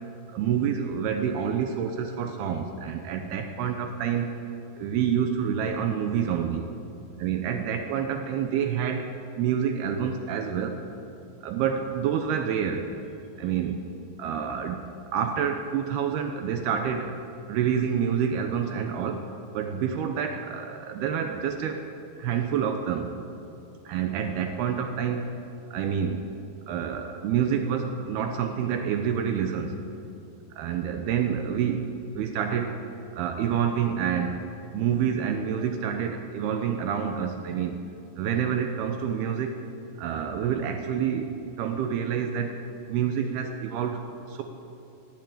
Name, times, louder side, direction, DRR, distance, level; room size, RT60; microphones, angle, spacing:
voice 1, 0.3-4.3 4.8-6.7 7.2-10.8 11.4-12.9 13.4-13.8 14.2-14.8 15.1-17.2 17.5-19.3 19.5-21.9 22.2-23.1 23.9-25.4 25.7-26.2 26.7-29.8 30.6-32.8 33.1-34.4 34.7-37.8 38.2-39.6 40.0-41.3 41.6-42.5 42.9-44.0 44.3-44.4, right 8 dB, 75° right, 5 dB, 2.4 m, -28 dB
16.5 x 9.3 x 8.8 m, 2.6 s
omnidirectional pair, 5.3 m